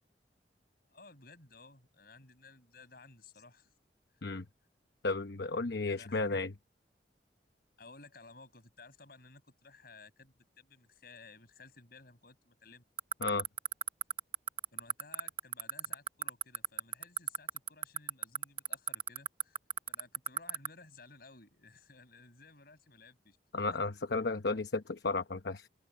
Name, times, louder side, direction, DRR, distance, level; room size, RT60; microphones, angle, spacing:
voice 1, 0.9-3.7 5.9-6.4 7.8-12.8 14.7-19.6 19.9-23.4, left 3 dB, 55° left, 8.0 m, -56 dB
voice 2, 5.0-6.5 13.2-13.4 23.5-25.7, left 3 dB, 70° left, 0.9 m, -33 dB
sound 1, 13.0-20.7, right 8 dB, 30° right, 0.8 m, -31 dB
open air
head